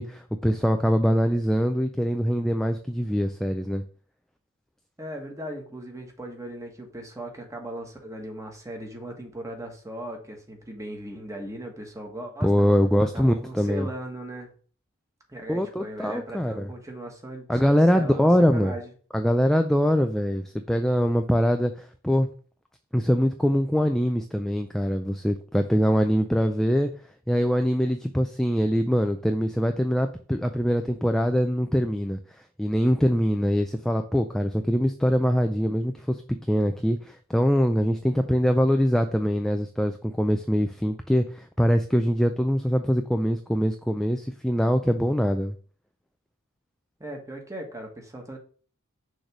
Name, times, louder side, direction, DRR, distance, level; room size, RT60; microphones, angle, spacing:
voice 1, 0.0-3.8 12.4-13.9 15.5-16.7 17.5-18.7 19.1-22.3 22.9-26.9 27.3-32.2 32.6-36.2 36.5-45.5, equal, ahead, 6 dB, 0.3 m, -23 dB
voice 2, 5.0-12.7 13.0-14.5 15.3-18.9 47.0-48.4, right 1 dB, 15° right, 2 dB, 1.4 m, -38 dB
6.4 x 3.3 x 6.0 m, 0.41 s
head